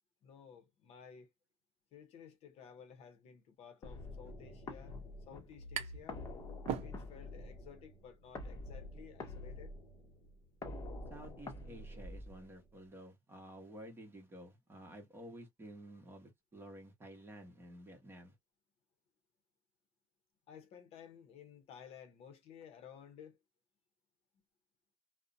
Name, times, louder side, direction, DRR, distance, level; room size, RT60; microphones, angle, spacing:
voice 1, 0.2-1.3 1.9-5.0 5.3-6.2 6.8-9.7 20.5-23.4, left 7 dB, 55° left, 0.7 m, -55 dB
sound 1, 3.8-12.8, left 2 dB, 25° left, 0.8 m, -47 dB
sound 2, 5.1-6.2 6.5-7.4, right 9 dB, 55° right, 0.6 m, -41 dB
voice 2, 11.1-18.3, right 1 dB, 20° right, 0.9 m, -52 dB
2.5 x 2.1 x 2.5 m
cardioid pair, 145°, 13 cm